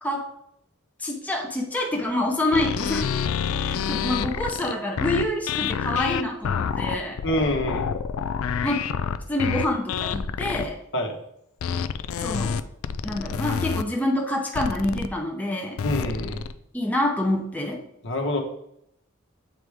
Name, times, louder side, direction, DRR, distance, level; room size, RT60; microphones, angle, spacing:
voice 1, 1.0-3.2 3.6-7.2 8.6-8.8 9.3-10.8 12.2-12.6 13.0-15.8 16.7-17.8, left 1 dB, 5° left, 0 dB, 0.7 m, -27 dB
sound 1, 2.5-10.7 11.6-13.8 14.5-15.1 15.8-16.5, left 7 dB, 90° left, 0.4 m, -28 dB
voice 2, 7.2-7.8 10.9-11.2 15.8-16.4 18.0-18.4, left 1 dB, 60° left, 2 dB, 1.1 m, -25 dB
7.7 x 4.7 x 3.5 m, 0.77 s
head